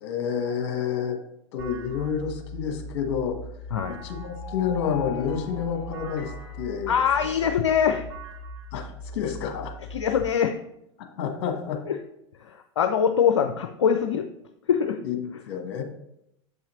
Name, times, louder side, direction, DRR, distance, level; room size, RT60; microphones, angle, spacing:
voice 1, 0.0-1.2 1.5-3.4 3.9-6.3 6.6-6.9 8.7-9.7 11.2-11.8 15.0-15.8, left 7 dB, 55° left, 5 dB, 1.2 m, -29 dB
sound 1, 1.6-10.3, equal, 70° right, 2.6 m, -40 dB
sound 2, 3.8-7.8, left 8 dB, 40° left, 2.0 m, -42 dB
voice 2, 6.9-8.1 9.9-10.6 11.9-12.0 12.5-14.3 14.7-15.0, left 7 dB, 70° left, 7 dB, 0.5 m, -23 dB
7.8 x 5.6 x 3.0 m, 0.82 s
figure-of-eight pair, 85°, 15 cm